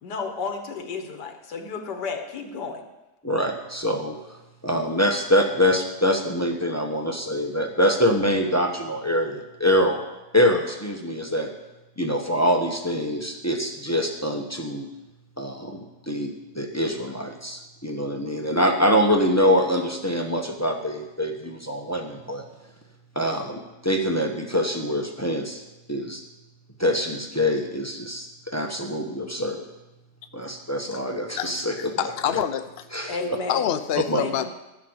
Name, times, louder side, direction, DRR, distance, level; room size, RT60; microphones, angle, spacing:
voice 1, 0.0-2.9 33.1-33.7 34.2-34.5, left 4 dB, 75° left, 5 dB, 1.8 m, -32 dB
voice 2, 3.2-4.2 4.6-10.0 10.3-11.5 12.0-14.9 15.4-22.4 23.1-25.6 25.9-26.2 26.8-29.6 30.3-32.0 32.9-33.4 34.1-34.2, equal, 15° left, 4 dB, 0.7 m, -24 dB
voice 3, 31.4-32.9 33.5-34.5, left 10 dB, 60° left, 10 dB, 0.6 m, -27 dB
13.5 x 6.1 x 7.9 m, 1.0 s
omnidirectional pair, 1.8 m